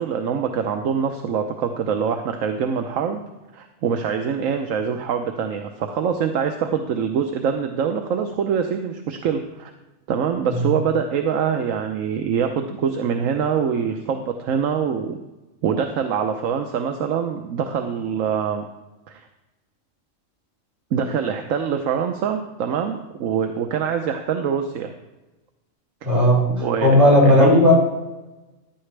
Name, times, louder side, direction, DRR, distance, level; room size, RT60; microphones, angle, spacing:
voice 1, 0.0-3.2 3.5-9.7 10.1-15.2 15.6-18.7 19.1-19.2 20.9-24.9 26.5-27.6, right 7 dB, 80° right, 6 dB, 1.2 m, -24 dB
voice 2, 26.0-27.7, left 1 dB, 55° right, -4 dB, 4.6 m, -15 dB
14.5 x 11.5 x 3.3 m, 1.1 s
omnidirectional pair, 1.4 m